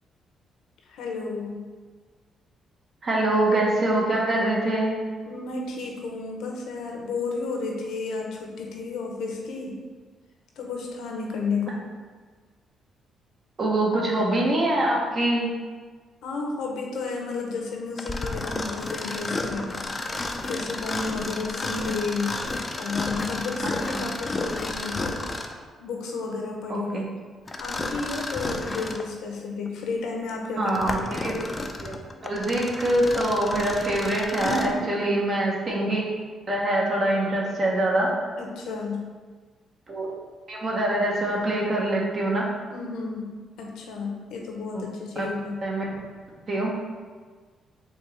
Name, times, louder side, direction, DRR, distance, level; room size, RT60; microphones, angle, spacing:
voice 1, 0.9-1.6 5.2-9.8 10.6-11.8 16.2-19.7 20.5-22.3 22.8-25.3 25.8-26.9 27.6-30.7 34.3-35.0 38.4-39.0 42.7-45.6, left 4 dB, 80° left, 0 dB, 0.7 m, -32 dB
voice 2, 3.0-4.9 13.6-15.5 23.6-24.0 26.7-27.1 30.6-31.3 31.8-36.0 36.5-38.1 39.9-40.1 40.5-42.5 44.7-44.9 45.2-45.3 45.6-45.8 46.5-46.7, right 1 dB, 45° right, -2 dB, 1.0 m, -24 dB
Mechanisms, 18.0-25.6 27.5-29.1 29.7-29.8 30.4-34.8, left 2 dB, 25° left, 0.4 m, -32 dB
4.4 x 2.9 x 3.3 m, 1.5 s
cardioid pair, 90°, 0 cm